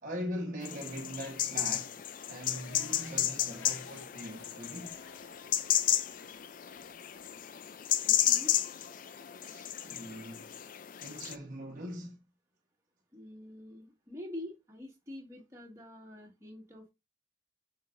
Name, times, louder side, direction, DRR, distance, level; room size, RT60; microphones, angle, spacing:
voice 1, 0.0-5.0 9.4-10.6 11.0-12.2, equal, 40° right, 1.2 m, -41 dB
sound 1, 0.6-11.3, left 11 dB, 45° left, 0.4 m, -33 dB
sound 2, 2.5-8.6, left 4 dB, 75° left, 0.9 m, -55 dB
voice 2, 8.0-8.5 13.1-16.9, left 1 dB, 15° right, 1.8 m, -46 dB
7.9 x 4.6 x 2.6 m
head